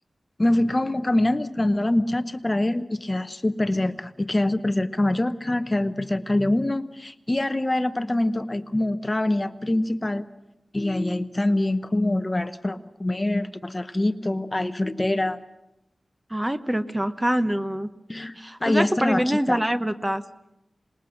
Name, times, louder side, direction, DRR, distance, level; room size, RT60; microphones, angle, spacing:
voice 1, 0.4-10.2 10.7-15.4 18.1-19.6, left 1 dB, 25° left, 11 dB, 0.8 m, -24 dB
voice 2, 16.3-17.9 18.3-20.2, right 1 dB, 10° right, 10 dB, 0.9 m, -25 dB
26.5 x 20.5 x 6.4 m, 0.92 s
wide cardioid pair, 95°, 0 cm